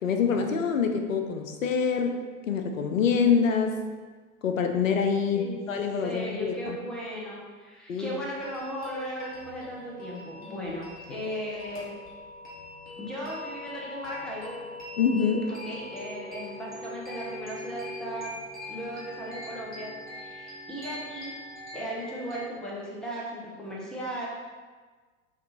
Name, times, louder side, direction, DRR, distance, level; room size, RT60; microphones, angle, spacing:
voice 1, 0.0-2.2 2.5-3.8 4.4-6.8 7.9-8.2 10.7-10.8 15.0-15.5, left 6 dB, 70° left, 5 dB, 0.6 m, -25 dB
voice 2, 6.0-12.0 13.0-14.5 15.5-18.4 18.7-21.3 21.7-24.3, equal, ahead, -4 dB, 0.5 m, -37 dB
sound 1, 8.3-22.5, left 2 dB, 20° left, 1.3 m, -42 dB
5.8 x 2.4 x 2.9 m, 1.4 s
figure-of-eight pair, 90°, 40 cm